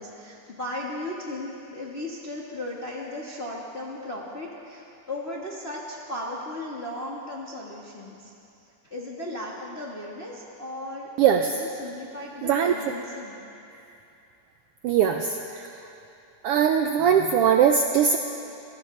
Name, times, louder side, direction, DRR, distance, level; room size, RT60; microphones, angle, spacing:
voice 1, 0.0-8.3 8.8-13.4, left 1 dB, 40° left, -4 dB, 0.9 m, -36 dB
voice 2, 11.2-11.5 12.4-12.7 14.8-15.7 16.4-18.2, right 8 dB, 90° right, 5 dB, 1.3 m, -21 dB
26.5 x 17.0 x 3.2 m, 2.7 s
omnidirectional pair, 3.3 m